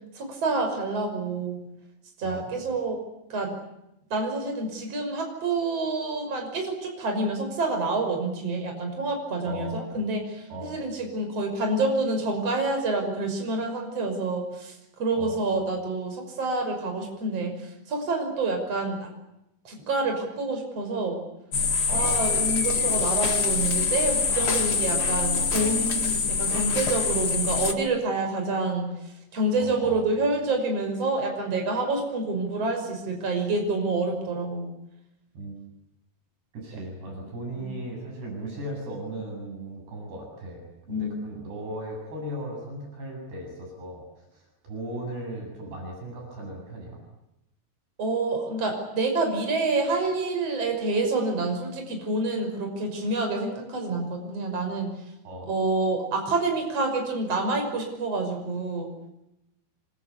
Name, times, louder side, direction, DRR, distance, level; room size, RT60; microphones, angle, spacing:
voice 1, 0.1-1.6 2.2-3.0 3.3-3.5 4.1-19.1 19.6-21.2 21.9-34.6 37.2-37.3 37.5-37.8 40.9-41.2 48.0-54.9 55.5-58.9, right 2 dB, 35° right, 4 dB, 6.6 m, -28 dB
voice 2, 9.4-9.8 10.5-10.8 15.1-15.4 21.9-22.3 24.3-24.8 25.4-25.8 29.6-30.1 35.3-35.6 36.5-40.6 40.9-44.0 44.3-47.0 55.2-55.5, right 1 dB, 65° right, 1 dB, 9.8 m, -37 dB
sound 1, 21.5-27.7, left 5 dB, 60° left, 1.0 m, -25 dB
27.5 x 24.5 x 8.5 m, 0.87 s
omnidirectional pair, 5.1 m